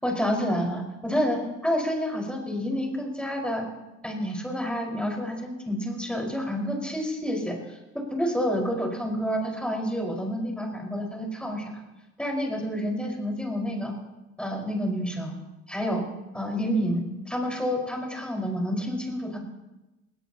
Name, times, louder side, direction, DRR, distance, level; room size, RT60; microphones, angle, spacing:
voice 1, 0.0-3.7 4.0-7.8 8.1-11.8 12.2-13.9 14.4-15.3 15.7-16.0 16.3-19.4, equal, 5° left, -1 dB, 5.1 m, -29 dB
20.5 x 19.0 x 3.0 m, 1.0 s
cardioid pair, 90°, 30 cm